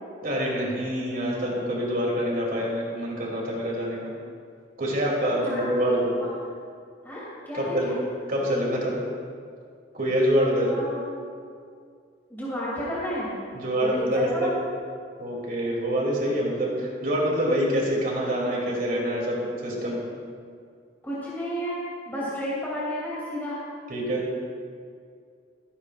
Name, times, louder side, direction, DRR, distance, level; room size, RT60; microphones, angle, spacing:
voice 1, 0.2-4.1 4.8-6.1 7.5-7.9 8.3-9.0 9.9-10.7 13.5-14.5 15.2-20.0 23.9-24.2, equal, 55° right, -3 dB, 3.0 m, -26 dB
voice 2, 5.3-6.3 7.0-7.9 10.6-11.2 12.3-13.4 13.8-14.5 21.0-21.8 22.0-23.6, equal, 10° left, -9 dB, 2.8 m, -32 dB
22.5 x 9.4 x 2.5 m, 2.2 s
head